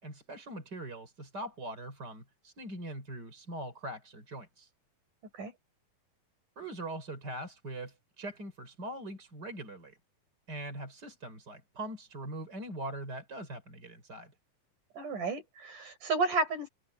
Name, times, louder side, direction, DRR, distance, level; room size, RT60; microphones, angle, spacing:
voice 1, 0.0-4.7 6.6-10.0 10.5-14.3, right 1 dB, 25° right, 4.4 m, -42 dB
voice 2, 15.0-16.7, right 3 dB, 55° right, 8.0 m, -32 dB
omnidirectional pair, 4.3 m